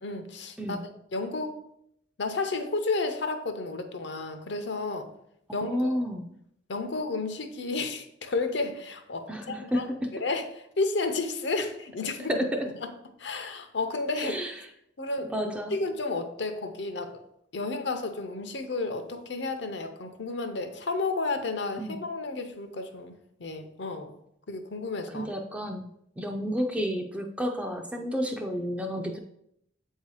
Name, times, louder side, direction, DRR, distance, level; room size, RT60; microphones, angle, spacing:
voice 1, 0.0-1.6 2.2-5.1 5.5-6.0 6.7-12.4 12.8-12.9 13.2-14.4 15.0-15.3 15.7-17.2 17.5-23.1 23.4-24.1 24.5-25.3, left 3 dB, 60° left, 7 dB, 0.6 m, -32 dB
voice 2, 5.6-6.3 9.3-9.8 12.3-12.7 14.2-14.5 15.3-15.7 21.8-22.0 25.1-25.9 26.2-29.2, equal, 5° right, 2 dB, 0.4 m, -30 dB
7.4 x 2.8 x 4.8 m, 0.76 s
head